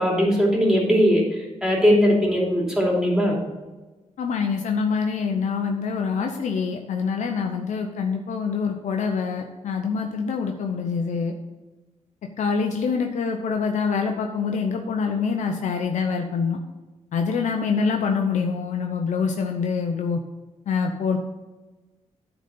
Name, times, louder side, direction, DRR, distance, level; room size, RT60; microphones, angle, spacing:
voice 1, 0.0-3.4, equal, 5° right, -3 dB, 2.9 m, -20 dB
voice 2, 4.2-11.3 12.4-16.6 17.1-20.2 20.7-21.2, left 5 dB, 80° left, 3 dB, 0.8 m, -25 dB
10.0 x 4.1 x 6.8 m, 1.2 s
cardioid pair, 100°, 12 cm